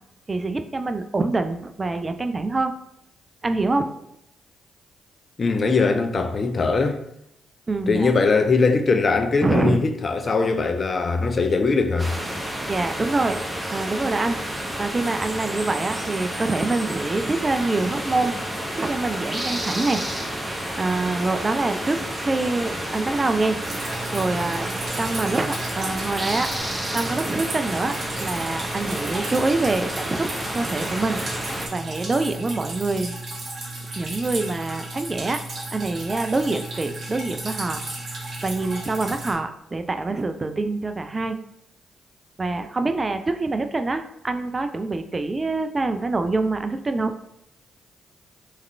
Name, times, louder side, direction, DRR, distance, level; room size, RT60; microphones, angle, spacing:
voice 1, 0.3-2.7 3.4-4.0 7.7-8.1 9.4-9.8 12.7-13.4 13.7-14.4 14.8-18.3 18.8-20.1 20.7-23.6 24.1-24.7 25.0-26.5 26.9-31.2 31.7-33.2 34.0-35.4 35.7-37.8 38.4-41.4 42.4-47.2, right 3 dB, 30° right, 0.4 m, -25 dB
voice 2, 5.4-7.0 7.9-12.1, left 4 dB, 45° left, 0.5 m, -21 dB
sound 1, 12.0-31.7, right 1 dB, 10° right, 0.9 m, -30 dB
Drip, 23.6-39.3, right 2 dB, 55° right, 1.2 m, -34 dB
3.5 x 3.2 x 3.2 m
hypercardioid pair, 40°, 0 cm